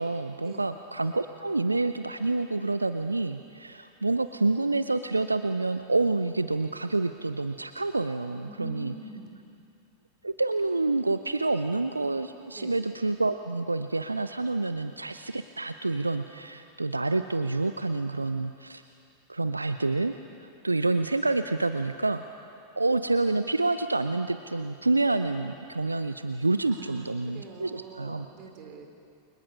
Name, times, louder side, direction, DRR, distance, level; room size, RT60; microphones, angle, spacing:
voice 1, 0.0-8.9 10.2-18.8 19.3-20.1 20.4-22.5 22.8-28.3, right 2 dB, 80° right, 10 dB, 0.6 m, -28 dB
voice 2, 8.4-9.4 12.5-12.7 26.7-28.9, right 4 dB, 40° right, 4 dB, 3.7 m, -44 dB
29.5 x 24.0 x 5.6 m, 2.6 s
figure-of-eight pair, 90°, 0 cm